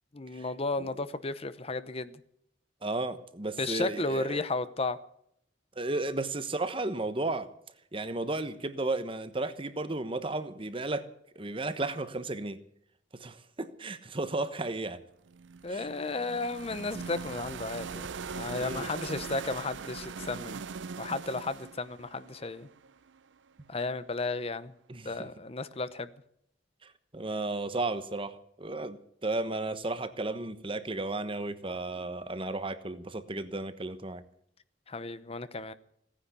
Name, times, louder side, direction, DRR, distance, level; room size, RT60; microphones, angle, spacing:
voice 1, 0.1-2.1 3.6-5.0 15.6-20.6 21.0-22.7 23.7-24.7 25.0-26.1 34.9-35.7, left 3 dB, 35° left, 0.8 m, -34 dB
voice 2, 2.8-4.4 5.8-7.5 7.9-11.1 11.4-12.6 13.2-15.0 15.7-15.9 18.6-18.9 24.9-25.3 26.8-34.2, right 2 dB, 30° right, 1.1 m, -34 dB
sound 1, 15.3-23.3, right 5 dB, 80° right, 0.5 m, -41 dB
17.5 x 10.0 x 8.3 m
head